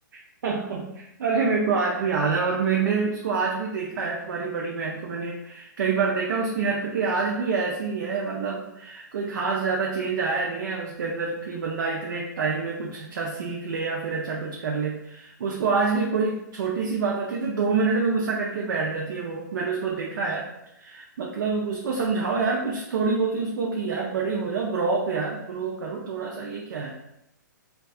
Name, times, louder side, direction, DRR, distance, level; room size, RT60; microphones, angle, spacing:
voice 1, 0.4-20.5 20.7-27.0, right 4 dB, 70° right, -1 dB, 0.4 m, -27 dB
2.6 x 2.2 x 2.3 m, 0.84 s
hypercardioid pair, 145°, 11 cm